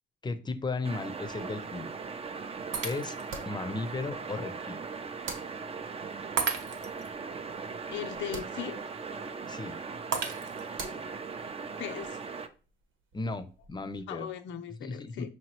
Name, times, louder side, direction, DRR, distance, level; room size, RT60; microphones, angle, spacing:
voice 1, 0.2-1.9 2.8-3.1 3.5-4.8 9.5-9.8 13.1-14.3 14.8-15.3, left 3 dB, 20° left, 0.6 m, -35 dB
sound 1, 0.8-12.5, right 5 dB, 30° right, 0.5 m, -39 dB
sound 2, 1.2-14.0, right 3 dB, 85° right, 1.1 m, -50 dB
Shatter, 2.7-3.4 4.0-4.1 6.4-7.1 10.1-10.9, right 6 dB, 70° right, 0.8 m, -33 dB
voice 2, 7.9-8.8 11.8-12.2 14.1-15.3, left 10 dB, 70° left, 0.4 m, -38 dB
5.3 x 3.0 x 3.0 m
cardioid pair, 90°, 20 cm